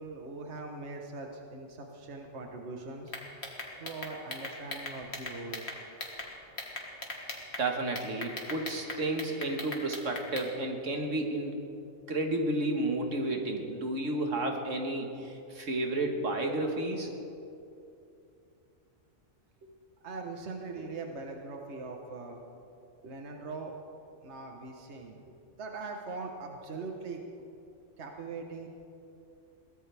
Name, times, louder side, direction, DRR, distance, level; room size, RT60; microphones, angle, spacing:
voice 1, 0.0-3.3 3.8-5.6 19.6-19.7 20.0-22.6 23.0-23.7 24.2-27.5 28.0-28.7, right 3 dB, 65° right, 2 dB, 1.5 m, -41 dB
sound 1, 3.1-6.3 6.6-7.6 8.0-10.5, left 2 dB, 60° left, 2.1 m, -39 dB
voice 2, 7.6-11.6 12.1-17.1, right 2 dB, 80° right, 3 dB, 1.9 m, -32 dB
22.5 x 17.0 x 3.5 m, 2.7 s
omnidirectional pair, 1.3 m